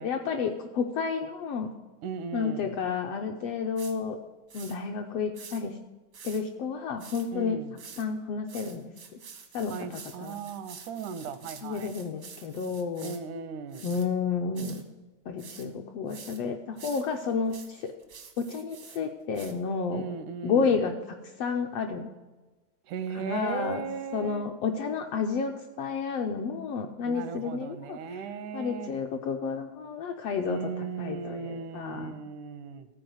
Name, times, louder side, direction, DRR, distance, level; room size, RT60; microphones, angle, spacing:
voice 1, 0.0-1.7 2.3-4.2 4.5-5.8 6.2-7.6 8.0-8.9 9.5-10.4 11.6-13.2 13.8-14.8 15.3-17.9 18.4-20.0 20.4-22.1 23.1-23.8 24.1-28.0 28.5-32.2, left 5 dB, 75° left, 4 dB, 1.5 m, -31 dB
voice 2, 2.0-2.8 7.3-7.8 9.7-11.9 13.0-13.9 19.9-20.8 22.8-24.5 27.0-28.9 30.4-32.9, right 6 dB, 85° right, 11 dB, 2.3 m, -37 dB
sound 1, 3.8-3.9 4.5-4.8 5.3-5.6 6.1-6.4 7.0-7.3 7.8-8.0 8.5-13.2 13.7-14.1 14.5-14.8 15.4-15.7 16.1-16.4 16.8-19.0 19.3-19.5, right 6 dB, 65° right, 0.9 m, -47 dB
13.5 x 4.7 x 7.8 m, 1.2 s
omnidirectional pair, 3.5 m